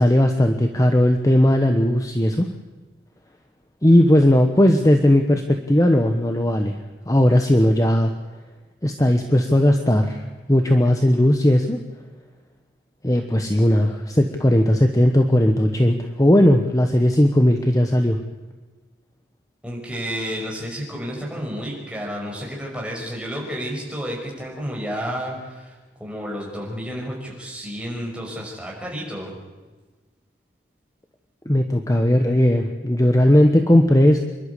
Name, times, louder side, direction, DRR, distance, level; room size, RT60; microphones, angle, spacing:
voice 1, 0.0-2.5 3.8-6.8 7.1-8.1 8.8-11.8 13.0-18.2 31.5-34.2, left 1 dB, 20° left, 5 dB, 1.1 m, -17 dB
voice 2, 19.6-29.4, equal, 5° right, -2 dB, 5.6 m, -31 dB
27.0 x 12.0 x 8.2 m, 1.3 s
head